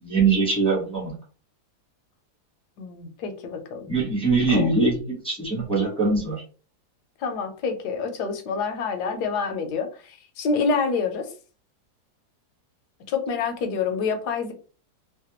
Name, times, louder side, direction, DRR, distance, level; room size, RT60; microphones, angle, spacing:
voice 1, 0.0-1.1 3.9-6.4, right 3 dB, 5° left, -4 dB, 0.6 m, -22 dB
voice 2, 2.8-3.8 4.5-4.7 7.2-11.3 13.1-14.5, left 5 dB, 70° left, 6 dB, 1.0 m, -27 dB
3.2 x 2.2 x 2.8 m, 0.38 s
omnidirectional pair, 2.0 m